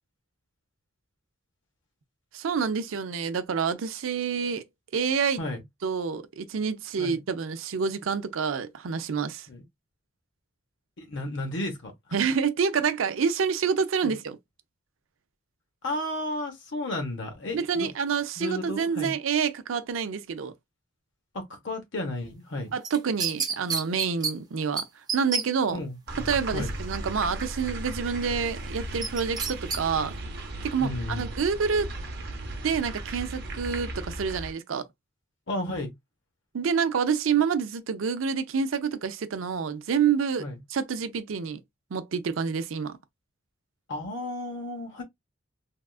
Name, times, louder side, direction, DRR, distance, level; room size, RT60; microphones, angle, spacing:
voice 1, 2.3-4.6 4.9-5.4 5.8-9.5 12.1-14.4 17.5-20.5 22.7-24.8 25.1-25.8 26.3-30.2 30.6-31.9 32.6-34.9 36.5-40.4 40.7-41.6 41.9-43.0, right 6 dB, 80° right, 0.5 m, -27 dB
voice 2, 11.0-11.9 14.0-14.2 15.8-17.9 18.4-19.2 21.3-22.7 25.7-26.7 30.8-31.3 35.5-35.9 40.4-40.6 43.9-45.0, left 1 dB, 65° left, 0.9 m, -33 dB
sound 1, 22.8-24.3 24.8-24.9 25.1-25.4 29.0-29.8 30.2-30.3, right 5 dB, 20° right, 0.6 m, -28 dB
sound 2, 26.1-34.5, right 1 dB, 55° right, 0.8 m, -36 dB
3.5 x 2.4 x 2.3 m
head